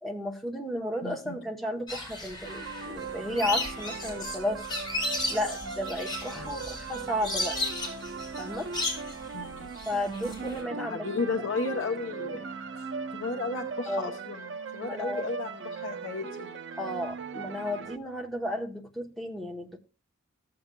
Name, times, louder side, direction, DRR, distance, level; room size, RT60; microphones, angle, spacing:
voice 1, 0.0-4.7 5.3-7.6 8.4-8.7 9.9-11.2 13.9-14.1 14.8-15.3 16.8-19.8, left 1 dB, ahead, 0.9 m, -33 dB
voice 2, 1.0-1.4 6.3-6.5 9.3-9.7 10.7-12.5 13.1-14.5 14.7-16.5, left 3 dB, 75° left, 0.7 m, -34 dB
Lorikeet Parrot Calls Ensemble A, 1.9-10.6, left 2 dB, 20° left, 3.7 m, -35 dB
sound 1, 2.4-18.0, right 5 dB, 65° right, 0.6 m, -39 dB
14.0 x 7.6 x 2.2 m
head